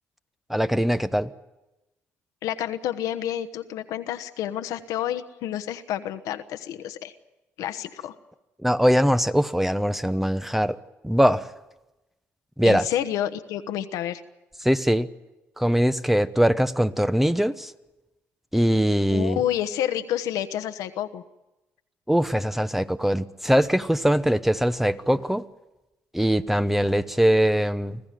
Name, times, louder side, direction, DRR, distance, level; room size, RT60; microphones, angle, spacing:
voice 1, 0.5-1.3 8.6-10.8 11.0-11.5 12.6-12.9 14.6-15.1 15.6-17.7 18.5-19.4 22.1-25.4 26.1-28.0, equal, 5° right, 0.9 m, -22 dB
voice 2, 2.4-7.1 7.6-8.1 12.6-14.2 19.1-21.2, left 11 dB, 85° left, 1.1 m, -29 dB
25.0 x 15.5 x 9.1 m
supercardioid pair, 70°, 6 cm